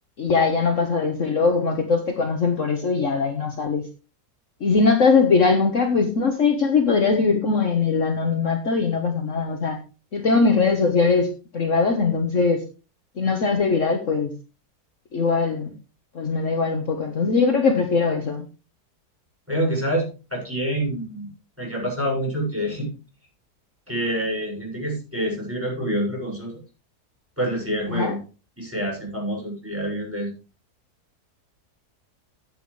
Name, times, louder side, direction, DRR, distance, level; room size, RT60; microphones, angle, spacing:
voice 1, 0.2-3.8 4.6-9.8 10.1-12.6 13.2-14.3 15.1-15.7 16.1-18.4 27.9-28.1, left 4 dB, 50° left, 4 dB, 1.6 m, -21 dB
voice 2, 19.5-21.3 21.6-22.9 23.9-26.6 27.4-28.2 28.6-30.3, right 1 dB, 5° right, -3 dB, 6.5 m, -27 dB
15.0 x 8.6 x 3.3 m, 0.32 s
omnidirectional pair, 1.8 m